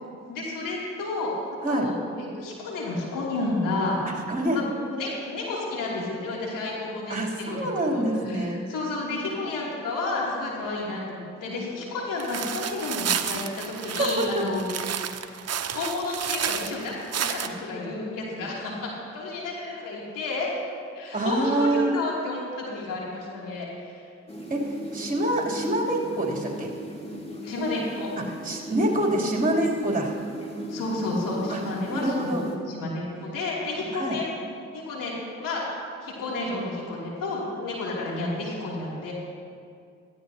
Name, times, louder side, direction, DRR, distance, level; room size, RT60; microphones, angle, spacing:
voice 1, 0.3-1.3 1.7-4.0 4.5-14.7 15.7-20.5 20.9-24.0 27.4-28.1 28.9-29.1 30.7-34.4 34.7-35.6 36.0-39.1, left 2 dB, 75° left, -4 dB, 2.9 m, -31 dB
voice 2, 4.0-4.6 7.1-8.6 13.9-14.3 15.2-15.4 21.1-21.9 24.5-26.7 28.4-30.2 31.5-31.6 31.9-32.4 33.9-34.2, right 1 dB, 25° right, -3 dB, 3.3 m, -26 dB
sound 1, 12.2-17.5, right 8 dB, 50° right, 0.8 m, -31 dB
sound 2, 24.3-32.6, right 1 dB, 20° left, 2.4 m, -37 dB
16.5 x 14.0 x 2.9 m, 2.3 s
hypercardioid pair, 45°, 33 cm